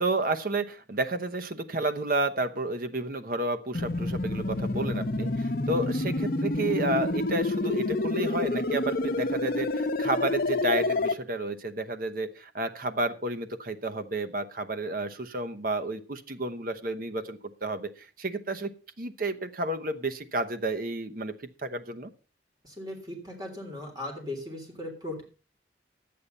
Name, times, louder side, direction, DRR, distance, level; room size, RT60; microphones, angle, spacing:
voice 1, 0.0-22.1, right 2 dB, 50° right, 9 dB, 0.9 m, -31 dB
sound 1, 3.7-11.1, left 2 dB, 50° left, 0.8 m, -28 dB
voice 2, 22.6-25.2, left 1 dB, 20° right, 1 dB, 3.4 m, -38 dB
11.0 x 8.5 x 5.4 m, 0.35 s
head